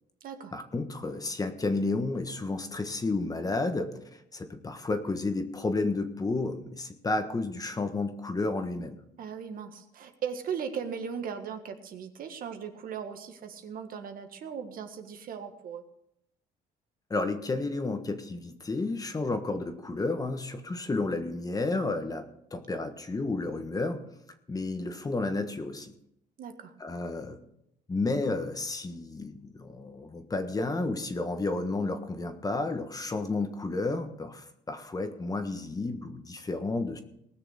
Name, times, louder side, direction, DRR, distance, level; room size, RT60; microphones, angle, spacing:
voice 1, 0.5-9.0 17.1-24.0 24.5-25.9 26.8-27.4 27.9-37.0, left 3 dB, 20° left, 7 dB, 1.4 m, -31 dB
voice 2, 9.2-15.8 26.4-26.7, right 7 dB, 60° right, 6 dB, 1.7 m, -38 dB
19.0 x 6.6 x 6.5 m, 0.77 s
cardioid pair, 110°, 17 cm